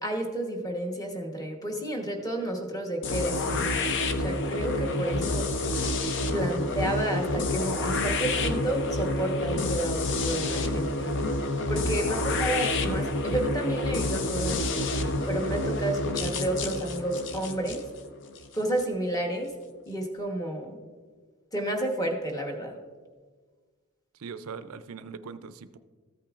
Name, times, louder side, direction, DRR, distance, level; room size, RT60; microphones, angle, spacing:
voice 1, 0.0-5.5 6.3-11.3 11.7-14.9 15.2-17.8 18.5-19.5 19.9-20.8 21.5-22.8, right 1 dB, 15° left, 2 dB, 1.1 m, -31 dB
sound 1, 3.0-18.8, left 2 dB, 55° left, 0.6 m, -28 dB
voice 2, 24.2-25.8, right 5 dB, 70° right, 12 dB, 0.4 m, -40 dB
14.0 x 8.6 x 2.4 m, 1.5 s
head